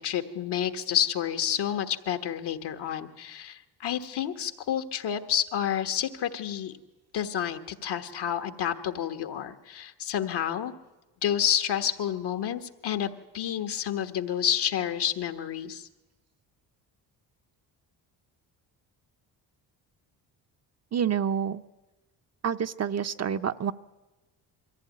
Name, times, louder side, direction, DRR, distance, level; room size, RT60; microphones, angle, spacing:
voice 1, 0.0-6.7 7.1-10.7 11.2-15.9, left 9 dB, 70° left, 7 dB, 1.5 m, -29 dB
voice 2, 20.9-21.6 22.4-23.7, right 8 dB, 40° right, 10 dB, 0.7 m, -28 dB
22.5 x 15.0 x 9.4 m, 1.1 s
supercardioid pair, 75°, 42 cm